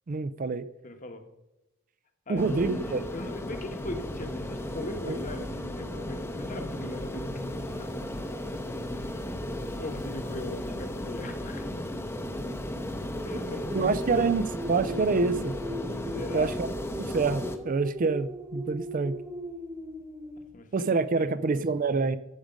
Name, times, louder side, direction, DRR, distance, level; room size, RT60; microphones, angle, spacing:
voice 1, 0.1-0.6 2.3-3.0 5.1-5.2 13.7-14.4 14.7-15.6 16.3-16.7 17.0-19.2 20.7-22.2, right 4 dB, 40° right, 14 dB, 0.4 m, -26 dB
voice 2, 0.8-1.2 2.3-7.9 9.8-11.6 13.2-14.5 16.0-16.5 20.5-21.6, left 1 dB, 40° left, 6 dB, 1.2 m, -39 dB
sound 1, 2.4-17.6, left 1 dB, 10° left, 0.7 m, -35 dB
sound 2, 13.1-20.5, equal, 15° right, 1.1 m, -39 dB
13.5 x 5.0 x 5.1 m, 0.95 s
head